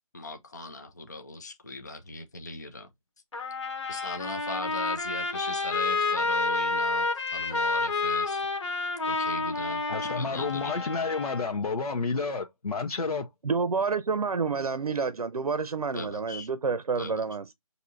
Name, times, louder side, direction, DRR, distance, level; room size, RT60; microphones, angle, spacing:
voice 1, 0.1-2.9 3.9-8.5 9.1-10.7 15.9-16.5 17.0-17.2, left 2 dB, 30° left, 0.5 m, -39 dB
Trumpet, 3.3-11.5, left 3 dB, 55° left, 1.1 m, -29 dB
voice 2, 9.9-13.3, left 4 dB, 80° left, 0.8 m, -30 dB
voice 3, 13.4-17.5, right 5 dB, 85° right, 0.7 m, -29 dB
5.9 x 2.7 x 2.5 m
figure-of-eight pair, 175°, 19 cm